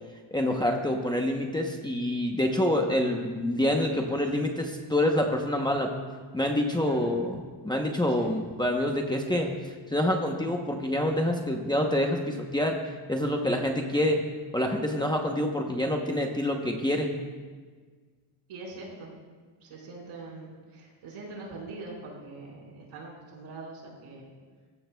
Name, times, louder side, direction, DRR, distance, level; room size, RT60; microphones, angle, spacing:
voice 1, 0.3-5.9 6.3-7.4 7.6-9.6 9.9-12.8 13.1-14.3 14.5-17.1, left 1 dB, 10° left, 1 dB, 0.8 m, -27 dB
voice 2, 6.8-7.3 8.1-8.3 18.5-19.2 19.6-24.4, right 2 dB, 85° right, -3 dB, 4.6 m, -43 dB
21.0 x 15.0 x 2.3 m, 1.5 s
cardioid pair, 180°, 49 cm